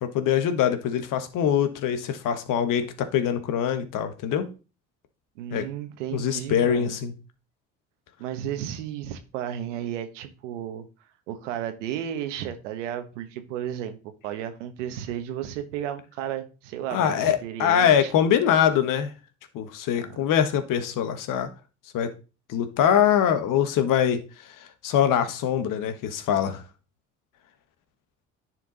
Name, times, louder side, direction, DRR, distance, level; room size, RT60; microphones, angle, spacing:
voice 1, 0.0-4.5 5.5-5.6 6.1-7.1 16.9-19.1 19.5-21.5 21.9-22.1 22.5-24.2 24.6-26.6, left 9 dB, 60° left, 1.3 m, -23 dB
voice 2, 5.4-7.0 8.2-10.9 11.3-14.0 14.2-18.1 20.0-20.2, right 10 dB, 85° right, 1.1 m, -33 dB
9.9 x 4.6 x 4.0 m
hypercardioid pair, 70°, 36 cm